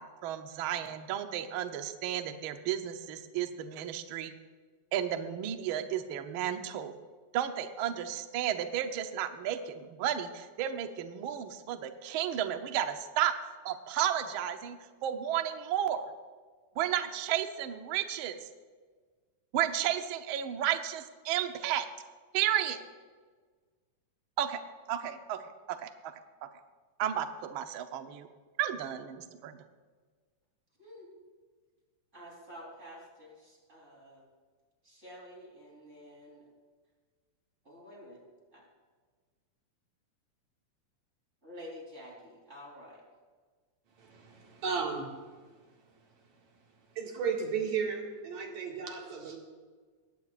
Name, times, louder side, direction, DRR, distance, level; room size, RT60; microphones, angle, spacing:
voice 1, 0.0-4.3 4.9-6.9 7.3-13.3 13.6-16.0 16.8-18.4 19.5-21.9 22.3-22.8 24.4-24.6 24.9-25.4 25.7-25.9 27.0-28.3 28.6-29.6, right 10 dB, 85° right, 7 dB, 1.1 m, -33 dB
voice 2, 30.8-31.1 32.1-34.2 34.8-36.4 37.6-38.2 38.5-38.7 41.4-43.0, equal, 20° right, -2 dB, 3.9 m, -49 dB
voice 3, 44.0-45.1 46.9-49.4, right 6 dB, 65° right, -1 dB, 3.3 m, -34 dB
20.0 x 16.5 x 2.5 m, 1.5 s
omnidirectional pair, 3.5 m